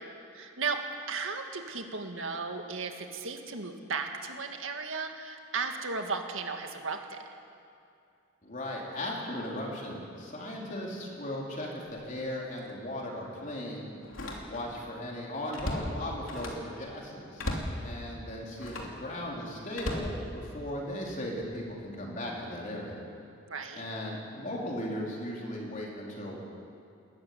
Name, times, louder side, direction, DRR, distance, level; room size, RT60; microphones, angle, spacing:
voice 1, 0.3-0.8 1.1-7.2 23.5-23.8, right 4 dB, 75° right, 4 dB, 1.9 m, -35 dB
voice 2, 8.4-13.8 14.4-17.4 17.8-23.0 23.8-26.4, left 1 dB, 40° left, -2 dB, 4.2 m, -37 dB
Slam, 11.9-12.1 12.6-12.7 14.0-14.8 15.2-16.7 17.4-17.8 18.5-19.0 19.7-20.8 21.4-21.7, left 1 dB, 80° left, 3.1 m, -37 dB
21.0 x 14.0 x 9.7 m, 2.5 s
head